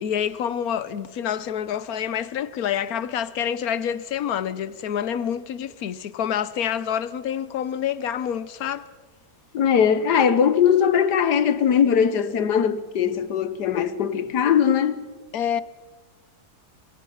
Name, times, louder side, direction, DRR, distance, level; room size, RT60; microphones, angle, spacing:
voice 1, 0.0-8.9 15.3-15.6, left 9 dB, 65° left, 1.3 m, -27 dB
voice 2, 9.5-15.0, left 8 dB, 85° left, 1.7 m, -20 dB
24.5 x 24.0 x 5.6 m
omnidirectional pair, 1.7 m